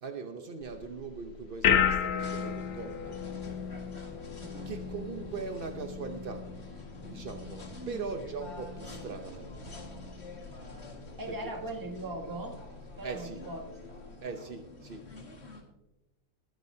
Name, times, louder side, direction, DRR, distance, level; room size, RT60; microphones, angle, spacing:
voice 1, 0.0-3.2 4.7-6.5 7.0-9.5 11.3-11.4 13.0-13.4 14.2-15.1, right 4 dB, 60° right, 5 dB, 0.5 m, -40 dB
sound 1, 0.6-14.2, left 8 dB, 80° left, 0.5 m, -35 dB
sound 2, 2.2-15.6, left 2 dB, 35° left, 2.1 m, -47 dB
voice 2, 4.4-4.8 7.7-8.0 9.1-9.2 11.2-12.6 13.0-13.8, right 2 dB, 15° right, 3 dB, 1.1 m, -40 dB
20.5 x 10.0 x 2.8 m, 0.95 s
omnidirectional pair, 2.1 m